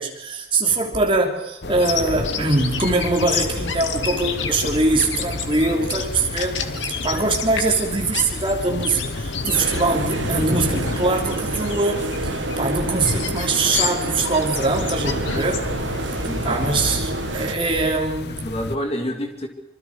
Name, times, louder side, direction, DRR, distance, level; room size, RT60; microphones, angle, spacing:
voice 1, 0.0-6.6 7.0-15.6 16.4-18.5, right 3 dB, 25° right, 1 dB, 3.2 m, -22 dB
sound 1, 1.6-18.8, left 2 dB, 55° left, 0.8 m, -30 dB
Bird vocalization bird call bird song, 1.8-17.0, left 7 dB, 80° left, 2.2 m, -32 dB
sound 2, 9.5-17.5, right 2 dB, 80° right, 1.4 m, -29 dB
voice 2, 16.1-16.7 17.1-17.5 18.3-19.5, equal, 30° left, 4 dB, 2.8 m, -30 dB
25.5 x 24.5 x 5.0 m, 0.86 s
head